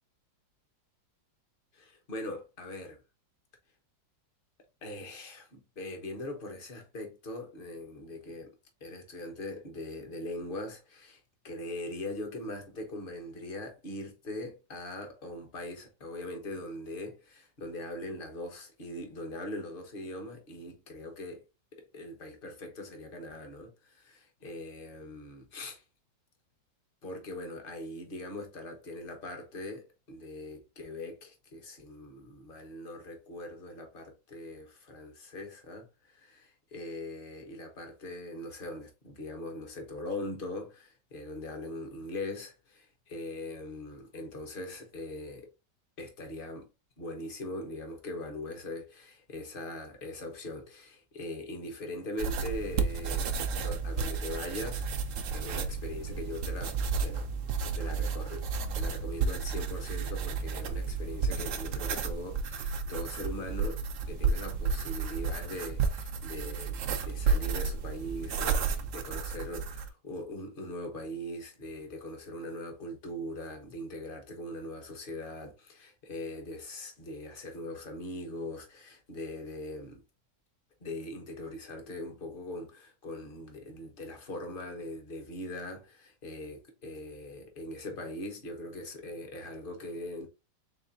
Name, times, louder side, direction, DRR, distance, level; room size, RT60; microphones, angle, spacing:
voice 1, 1.7-3.0 4.8-8.5 8.8-21.4 21.7-25.8 27.0-45.5 46.0-46.7 47.0-57.3 57.7-58.5 58.7-63.8 64.1-80.0 80.8-90.3, left 1 dB, 35° left, 1.0 m, -41 dB
sound 1, 52.2-69.9, right 5 dB, 65° right, 0.7 m, -32 dB
4.1 x 3.8 x 2.6 m
omnidirectional pair, 2.0 m